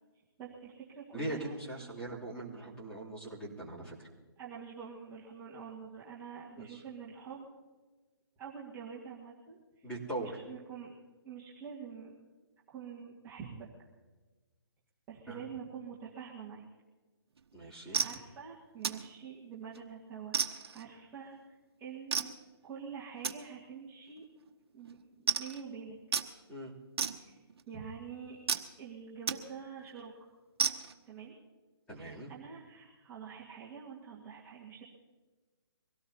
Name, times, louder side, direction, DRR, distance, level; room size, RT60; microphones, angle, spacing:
voice 1, 0.4-1.9 4.4-7.5 8.4-9.9 10.2-10.9 11.2-12.2 12.7-13.7 15.1-16.6 17.6-22.3 22.6-24.2 24.7-26.0 27.2-27.4 27.7-28.4 28.8-30.3 31.1-31.4 32.0-34.8, right 6 dB, 15° right, -6 dB, 1.7 m, -46 dB
voice 2, 1.1-3.9 6.6-6.8 9.8-10.3 15.3-15.4 17.5-18.0 26.5-26.7 31.9-32.3, right 2 dB, 10° left, -7 dB, 3.1 m, -41 dB
sound 1, 17.4-17.5 17.9-18.2 18.8-19.1 19.5-19.8 20.3-20.8 22.1-22.3 23.2-23.4 24.1-24.2 24.5-24.6 24.8-24.9 25.3-25.6 26.1-26.3 27.0-27.6 28.5-28.7 29.3-29.4 29.8-29.9 30.6-30.9, right 6 dB, 65° right, 1.1 m, -32 dB
24.0 x 17.5 x 2.9 m, 1.3 s
hypercardioid pair, 155°, 14 cm